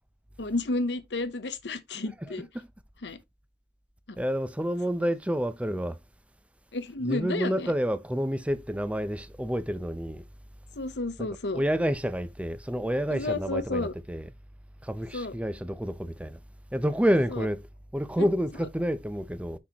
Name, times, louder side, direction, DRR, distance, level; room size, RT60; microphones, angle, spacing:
voice 1, 0.4-2.5 3.0-3.2 4.1-4.2 6.7-7.7 10.8-11.6 13.1-13.9 15.1-15.3 17.3-17.4, left 2 dB, 75° left, 0.9 m, -31 dB
voice 2, 2.3-2.7 4.2-6.0 7.0-10.2 11.2-11.3 11.5-14.3 14.8-16.4 16.7-17.7 17.9-19.6, equal, 5° right, 0.6 m, -29 dB
6.3 x 5.8 x 3.0 m
head